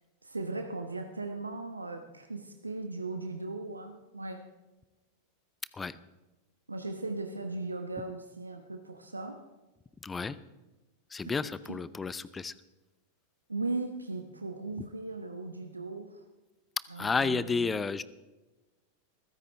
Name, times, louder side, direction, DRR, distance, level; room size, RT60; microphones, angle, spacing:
voice 1, 0.2-4.5 6.7-9.5 11.2-11.3 11.7-11.8 13.5-16.2 16.9-17.7, right 3 dB, 80° right, 6 dB, 1.1 m, -38 dB
voice 2, 10.0-10.4 11.1-12.5 17.0-18.0, left 4 dB, 15° left, 17 dB, 0.7 m, -31 dB
22.0 x 15.0 x 3.4 m, 1.1 s
figure-of-eight pair, 90°, 0 cm